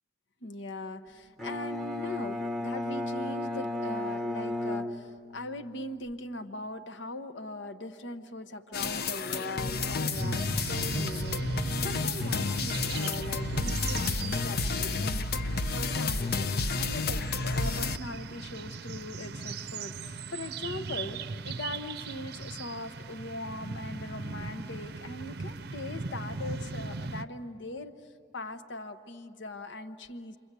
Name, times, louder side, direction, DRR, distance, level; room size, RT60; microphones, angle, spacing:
voice 1, 0.4-15.3 15.7-27.9 28.3-30.4, left 2 dB, 75° left, 9 dB, 1.0 m, -40 dB
Bowed string instrument, 1.4-5.6, left 1 dB, ahead, 0.9 m, -34 dB
sound 1, 8.7-18.0, left 3 dB, 50° left, 0.6 m, -31 dB
sound 2, 10.1-27.2, right 4 dB, 55° right, 0.6 m, -39 dB
29.0 x 24.5 x 8.3 m, 2.3 s
head